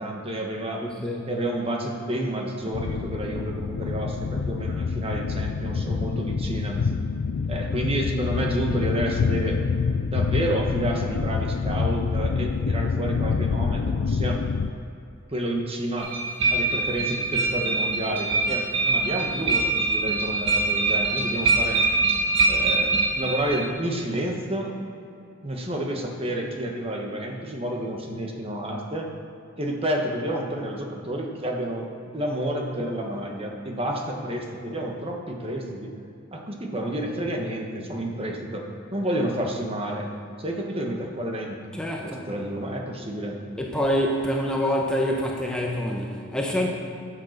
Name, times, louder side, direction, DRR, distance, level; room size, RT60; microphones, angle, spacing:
voice 1, 0.0-0.8 1.3-6.8 7.5-9.6 10.1-14.4 15.3-16.1 16.5-21.8 22.5-24.7 25.4-29.1 29.6-35.9 36.3-40.1 40.4-41.6 42.0-43.4, right 1 dB, 30° right, 1 dB, 1.3 m, -30 dB
voice 2, 0.8-1.3 41.7-42.2 43.6-46.7, equal, 5° left, -1 dB, 0.9 m, -26 dB
sound 1, 2.7-14.7, left 5 dB, 65° left, 0.4 m, -26 dB
sound 2, 16.0-23.7, right 3 dB, 60° right, 1.7 m, -24 dB
10.0 x 7.8 x 6.6 m, 2.6 s
head